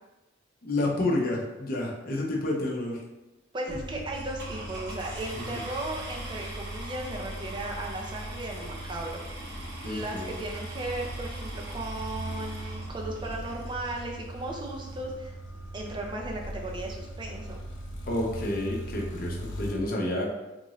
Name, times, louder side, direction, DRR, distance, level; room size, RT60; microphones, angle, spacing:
voice 1, 0.6-3.0 3.7-3.8 5.3-5.6 9.8-10.3 18.1-20.3, left 2 dB, 50° left, -2 dB, 0.7 m, -30 dB
voice 2, 3.5-15.3 15.7-17.6, right 1 dB, 25° right, 0 dB, 0.5 m, -36 dB
sound 1, 3.7-19.7, right 1 dB, 85° left, 0.7 m, -39 dB
sound 2, 4.1-14.1 14.9-15.0 15.5-15.6 15.8-16.1, right 1 dB, 60° right, 1.4 m, -43 dB
3.7 x 2.5 x 3.0 m, 1.0 s
head